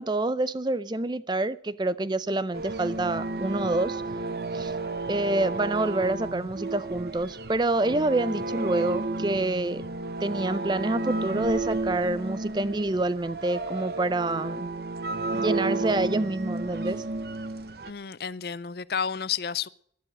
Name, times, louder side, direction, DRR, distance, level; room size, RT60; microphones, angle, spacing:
voice 1, 0.0-4.0 4.5-4.7 5.1-9.8 10.2-14.7 15.3-17.0, right 2 dB, 25° right, 0.5 m, -27 dB
sound 1, 2.5-17.9, right 2 dB, 60° right, 0.8 m, -32 dB
voice 2, 17.9-19.7, left 7 dB, 60° left, 0.5 m, -31 dB
11.5 x 11.5 x 7.6 m
head